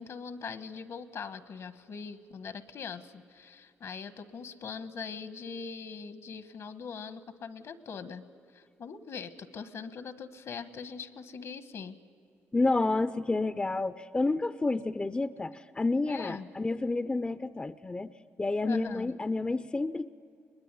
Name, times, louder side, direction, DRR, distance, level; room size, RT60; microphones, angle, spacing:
voice 1, 0.0-8.2 8.5-12.0 16.1-16.5 18.6-19.1, left 5 dB, 65° left, 11 dB, 1.2 m, -41 dB
voice 2, 12.5-18.1 18.4-20.1, left 3 dB, 20° left, 13 dB, 0.5 m, -29 dB
21.5 x 21.0 x 9.8 m, 2.4 s
cardioid pair, 70°, 5 cm